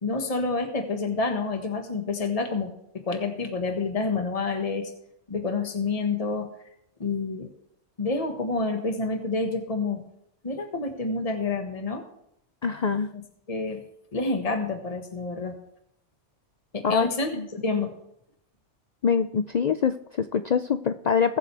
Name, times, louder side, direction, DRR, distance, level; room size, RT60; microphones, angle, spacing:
voice 1, 0.0-4.9 5.3-6.5 7.0-7.5 8.0-10.0 10.4-12.0 13.1-13.8 14.1-15.6 16.7-17.9, left 3 dB, 30° left, 5 dB, 1.5 m, -28 dB
voice 2, 12.6-13.1 16.8-17.1 17.4-17.5 19.0-21.4, left 6 dB, 55° left, 10 dB, 0.5 m, -24 dB
21.5 x 7.8 x 3.4 m, 0.75 s
omnidirectional pair, 1.2 m